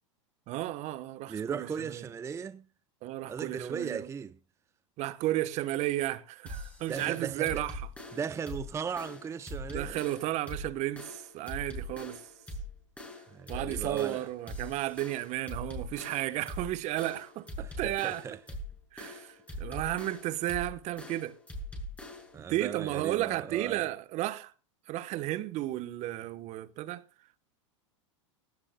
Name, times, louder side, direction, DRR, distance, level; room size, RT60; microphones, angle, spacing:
voice 1, 0.5-2.0 3.0-4.1 5.0-7.8 9.7-12.2 13.5-18.2 18.9-21.4 22.5-24.5 24.9-27.0, right 15 dB, 45° right, 1.1 m, -33 dB
voice 2, 1.3-2.7 3.3-4.4 6.9-7.6 8.1-10.0 13.3-14.3 17.6-18.4 19.5-19.6 22.3-23.9, right 6 dB, 15° right, 0.6 m, -37 dB
sound 1, 6.5-22.4, left 1 dB, 10° left, 6.6 m, -42 dB
19.0 x 17.0 x 2.2 m
hypercardioid pair, 105°, 17 cm